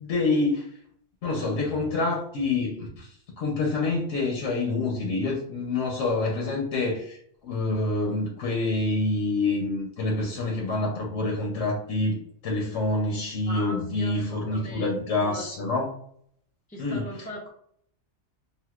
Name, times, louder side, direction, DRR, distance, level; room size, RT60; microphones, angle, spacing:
voice 1, 0.1-0.6 1.2-15.9 16.8-17.1, left 2 dB, 80° left, 0 dB, 1.0 m, -27 dB
voice 2, 13.5-15.5 16.7-17.5, equal, 15° left, -3 dB, 0.3 m, -39 dB
3.5 x 2.5 x 2.3 m, 0.64 s
omnidirectional pair, 1.2 m